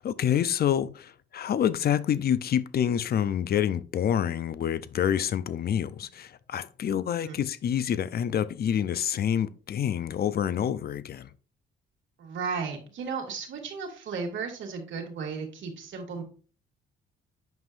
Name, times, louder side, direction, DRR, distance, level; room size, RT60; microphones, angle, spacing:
voice 1, 0.0-11.3, left 9 dB, 50° left, 0.6 m, -27 dB
voice 2, 12.2-16.2, right 5 dB, 70° right, 2.4 m, -35 dB
9.2 x 5.5 x 2.6 m
cardioid pair, 90°, 20 cm